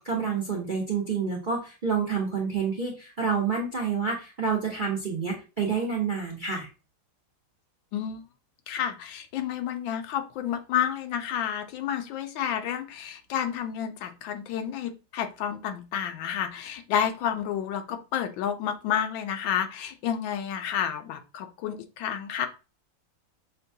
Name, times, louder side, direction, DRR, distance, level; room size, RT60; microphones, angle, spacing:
voice 1, 0.0-6.7, right 5 dB, 50° right, -1 dB, 0.6 m, -28 dB
voice 2, 7.9-8.2 8.7-22.5, left 9 dB, 85° left, 8 dB, 1.4 m, -30 dB
6.4 x 2.2 x 2.6 m, 0.31 s
omnidirectional pair, 2.1 m